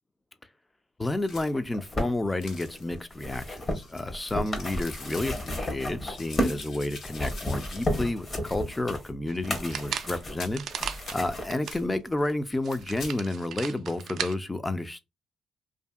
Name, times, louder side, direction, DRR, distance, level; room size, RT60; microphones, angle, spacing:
voice 1, 1.0-10.6 11.1-15.0, left 2 dB, 15° left, 0.4 m, -30 dB
sound 1, 1.3-1.8 2.4-3.0 3.6-5.5 6.1-8.2 8.5-8.6 9.6-9.9 10.3-10.7 11.1-11.2 11.6-11.9 12.5-13.2, left 3 dB, 65° left, 1.0 m, -45 dB
sound 2, 1.5-6.6 7.0-11.5 12.3-12.4, left 1 dB, 40° left, 0.9 m, -33 dB
sound 3, 9.3-11.8 12.3-12.4 12.6-14.3, right 8 dB, 65° right, 0.3 m, -36 dB
2.7 x 2.6 x 2.3 m
cardioid pair, 90°, 0 cm